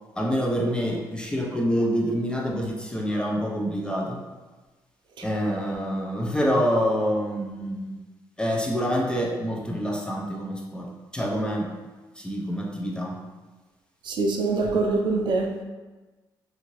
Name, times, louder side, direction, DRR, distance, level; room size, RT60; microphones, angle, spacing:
voice 1, 0.2-4.2 5.2-8.0 8.4-11.7 12.2-13.2, equal, 10° left, -1 dB, 0.5 m, -26 dB
voice 2, 14.0-15.6, right 3 dB, 65° right, 1 dB, 0.5 m, -24 dB
2.7 x 2.5 x 3.0 m, 1.2 s
cardioid pair, 85°, 8 cm